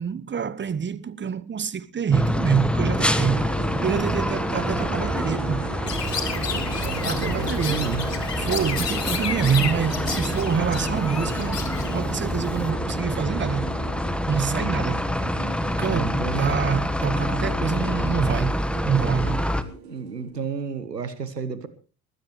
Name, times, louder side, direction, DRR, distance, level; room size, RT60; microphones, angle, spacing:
voice 1, 0.0-3.5 3.8-5.7 7.0-7.9 8.4-13.7 14.3-15.1 15.8-18.6 18.8-19.5, right 7 dB, 25° right, 1.0 m, -26 dB
sound 1, 2.1-19.6, left 1 dB, ahead, 1.2 m, -27 dB
sound 2, 3.0-20.3, right 4 dB, 75° right, 4.3 m, -37 dB
Chirp tweet, 5.9-12.7, left 6 dB, 85° left, 1.4 m, -32 dB
voice 2, 6.8-8.1 14.4-14.5 15.4-16.6 19.9-21.7, right 5 dB, 90° right, 1.2 m, -32 dB
21.5 x 15.5 x 3.1 m
figure-of-eight pair, 50°, 47 cm